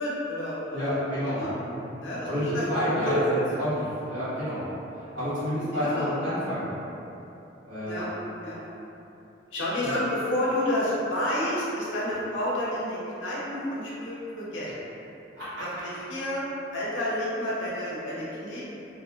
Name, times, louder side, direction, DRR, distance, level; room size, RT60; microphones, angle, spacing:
voice 1, 0.0-1.0 1.4-1.5 2.0-2.3 2.5-2.6 3.1-3.2 5.7-6.1 7.9-8.1 8.4-8.6 9.5-14.7 15.6-16.4 16.7-18.6, left 1 dB, 90° left, -7 dB, 0.8 m, -30 dB
voice 2, 0.7-1.8 2.2-4.7 4.9-6.7 7.6-8.0 9.8-9.9 15.3-15.5, equal, 75° right, -15 dB, 1.4 m, -29 dB
3.0 x 2.1 x 2.7 m, 2.9 s
head